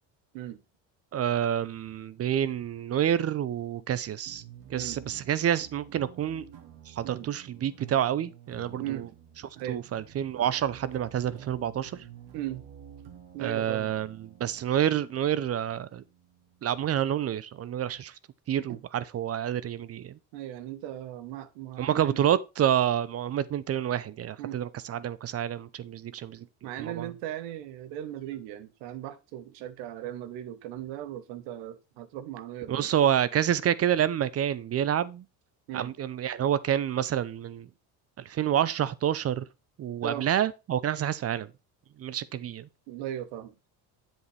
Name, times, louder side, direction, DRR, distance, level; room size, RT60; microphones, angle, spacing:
voice 1, 1.1-4.4 4.7-6.4 6.9-9.1 9.7-12.0 13.4-16.0 16.6-18.2 18.5-20.2 21.8-26.5 26.8-27.1 32.7-35.3 35.7-37.7 38.2-39.4 39.8-41.5 42.0-42.7, right 10 dB, 40° right, 0.6 m, -28 dB
sound 1, 4.3-17.1, right 9 dB, 70° right, 1.9 m, -50 dB
voice 2, 12.3-12.6 13.3-13.9 18.7-18.8 20.3-22.2 24.4-24.6 26.6-32.9 35.7-35.9 40.0-40.3 42.9-43.5, right 12 dB, 85° right, 1.1 m, -38 dB
8.0 x 7.4 x 3.3 m
supercardioid pair, 105°, 40 cm